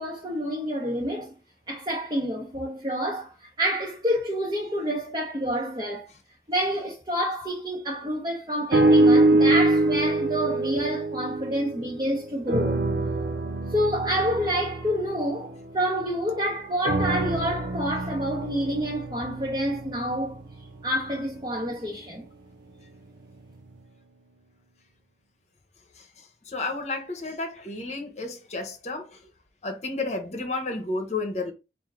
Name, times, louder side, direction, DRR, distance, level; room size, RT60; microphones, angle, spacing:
voice 1, 0.0-1.3 1.7-6.1 6.5-12.8 13.7-20.4 20.8-22.2, equal, 25° right, 0.8 m, -28 dB
sound 1, 8.7-12.1 12.5-16.2 16.8-21.1 21.7-21.8, right 2 dB, 90° right, 0.6 m, -24 dB
voice 2, 26.5-29.2 29.6-31.5, left 3 dB, 40° left, 0.9 m, -31 dB
4.4 x 2.6 x 3.7 m
head